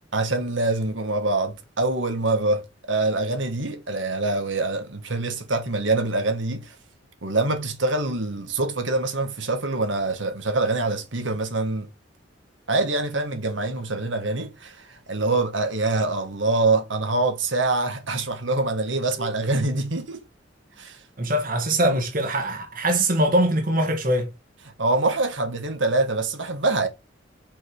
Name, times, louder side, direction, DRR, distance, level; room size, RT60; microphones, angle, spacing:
voice 1, 0.1-6.7 7.2-11.9 12.7-20.2 20.8-21.0 24.8-26.9, right 2 dB, 75° right, 1.7 m, -25 dB
voice 2, 21.2-24.3, right 1 dB, 45° right, 1.4 m, -22 dB
5.6 x 5.2 x 4.7 m
head